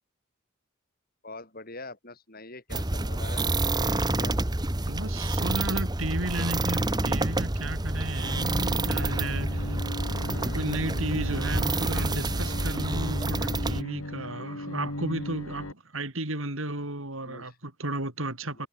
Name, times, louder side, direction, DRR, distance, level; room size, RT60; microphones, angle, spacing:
voice 1, 1.2-4.4 17.2-17.6 18.5-18.7, left 2 dB, 45° left, 7.2 m, -44 dB
sound 1, 2.7-13.8, right 2 dB, 20° right, 1.2 m, -28 dB
voice 2, 4.9-8.5 8.8-9.8 10.5-18.7, right 2 dB, 70° right, 5.4 m, -34 dB
Bowed string instrument, 8.2-15.7, left 1 dB, 85° left, 3.0 m, -37 dB
head